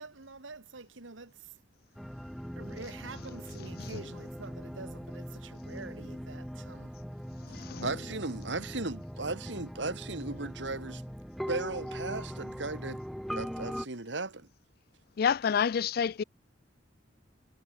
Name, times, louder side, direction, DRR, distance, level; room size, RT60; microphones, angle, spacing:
voice 1, 0.0-1.5 2.6-6.9, right 3 dB, 90° right, 1.8 m, -47 dB
sound 1, 2.0-13.9, equal, ahead, 3.6 m, -41 dB
voice 2, 3.6-4.1 7.4-8.1 15.2-16.2, left 7 dB, 50° left, 0.4 m, -30 dB
voice 3, 7.8-11.0 11.5-13.0 13.3-14.5, right 3 dB, 70° right, 2.1 m, -36 dB
head